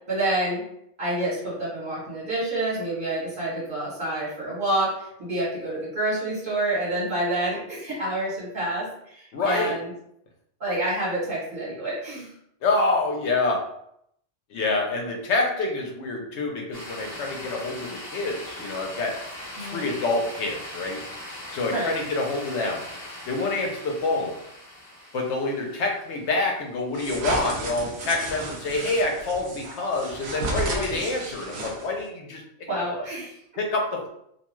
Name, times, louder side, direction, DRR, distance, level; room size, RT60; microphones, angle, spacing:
voice 1, 0.1-0.6 1.0-9.9 10.6-12.3 19.6-19.9 21.7-21.9 30.9-31.0 32.7-33.4, right 1 dB, 50° right, -7 dB, 1.2 m, -28 dB
voice 2, 9.3-9.7 12.6-13.7 14.5-19.2 19.6-21.0 21.5-22.8 23.3-24.4 25.1-32.9 33.6-34.1, left 2 dB, 75° left, 1 dB, 0.9 m, -27 dB
sound 1, 16.7-27.0, left 1 dB, 25° left, 0.8 m, -40 dB
sound 2, 26.9-32.1, right 2 dB, 70° right, 0.9 m, -33 dB
2.5 x 2.3 x 3.0 m, 0.74 s
omnidirectional pair, 1.2 m